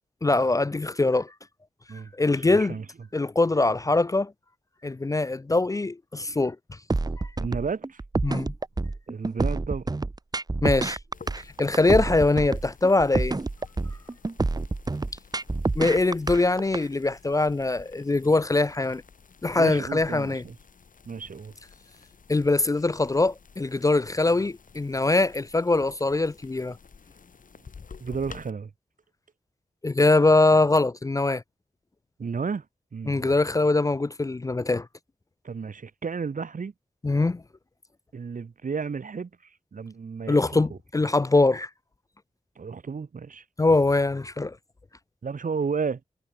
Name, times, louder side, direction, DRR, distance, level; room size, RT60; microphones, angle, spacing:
voice 1, 0.2-1.3 2.2-2.8 3.1-4.3 4.8-6.6 7.2-7.3 8.2-8.5 10.6-11.0 11.6-13.4 15.8-19.0 19.4-20.4 22.3-26.8 29.8-31.4 33.1-34.9 37.0-37.4 40.3-41.7 43.6-44.6, left 2 dB, 25° left, 0.4 m, -22 dB
voice 2, 2.5-2.9 7.4-8.0 9.1-9.9 19.6-20.6 21.1-21.5 28.0-28.7 32.2-32.6 32.9-33.3 35.4-36.7 38.1-39.3 39.7-40.8 42.6-43.4 45.2-46.0, right 5 dB, 70° right, 4.4 m, -32 dB
sound 1, 6.9-16.8, right 3 dB, 30° right, 1.3 m, -28 dB
sound 2, 11.1-28.5, left 5 dB, 75° left, 5.0 m, -51 dB
wide cardioid pair, 110°, 14 cm